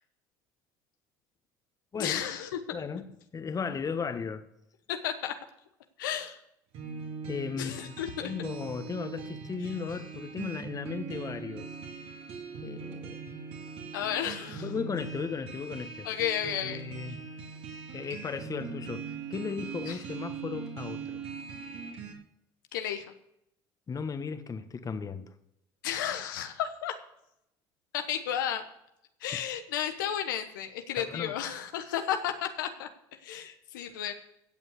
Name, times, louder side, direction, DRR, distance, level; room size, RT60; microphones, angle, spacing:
voice 1, 2.0-2.6 4.9-5.3 6.0-6.4 7.6-8.3 13.9-14.6 16.0-16.8 19.9-20.0 22.7-23.0 25.8-26.9 27.9-28.6 29.2-32.9 33.2-34.1, left 10 dB, 90° left, 1.1 m, -32 dB
voice 2, 2.7-4.5 7.3-11.7 12.6-13.2 14.2-16.1 16.6-17.3 17.9-21.2 23.9-25.3 31.0-31.4, left 5 dB, 35° left, 1.4 m, -36 dB
sound 1, 6.7-22.1, right 5 dB, 65° right, 3.1 m, -41 dB
16.0 x 5.4 x 8.3 m
hypercardioid pair, 75°, 11 cm